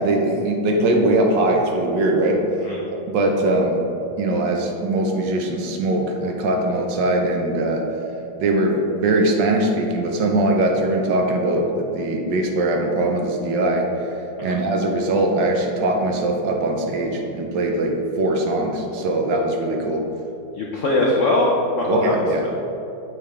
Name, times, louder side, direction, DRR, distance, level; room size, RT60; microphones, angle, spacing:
voice 1, 0.0-2.4 2.9-3.8 4.2-7.9 8.4-14.1 14.4-20.1 21.9-22.5, right 2 dB, 70° right, 2 dB, 1.2 m, -21 dB
voice 2, 20.6-21.5 21.8-22.1, left 2 dB, 80° left, -3 dB, 0.6 m, -21 dB
6.8 x 5.0 x 3.3 m, 2.8 s
omnidirectional pair, 2.2 m